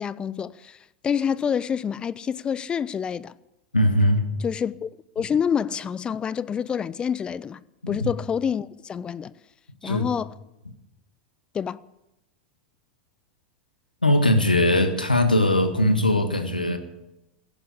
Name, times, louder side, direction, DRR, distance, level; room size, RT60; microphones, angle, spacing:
voice 1, 0.0-3.3 4.4-4.9 5.2-9.3 9.8-10.3 11.5-11.8, left 7 dB, 20° left, 0.5 m, -27 dB
voice 2, 3.7-4.3 7.8-8.0 9.8-10.1 14.0-16.8, left 1 dB, 85° left, 1.5 m, -20 dB
15.0 x 11.0 x 8.4 m
figure-of-eight pair, 90°, 5 cm